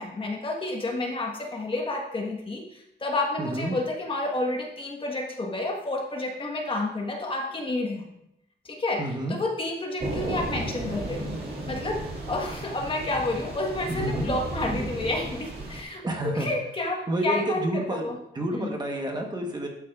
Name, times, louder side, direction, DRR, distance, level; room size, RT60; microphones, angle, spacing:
voice 1, 0.0-8.0 8.6-9.0 9.3-11.2 11.7-12.0 12.3-18.2 18.5-18.7, left 2 dB, 30° left, 0 dB, 1.3 m, -30 dB
voice 2, 3.4-3.8 9.0-9.4 13.9-14.4 16.0-16.5 17.1-19.7, right 1 dB, 20° right, 1 dB, 1.1 m, -29 dB
Thunder / Rain, 10.0-15.8, right 1 dB, 55° right, 2.0 m, -34 dB
11.5 x 8.3 x 2.4 m, 0.77 s
wide cardioid pair, 175°, 19 cm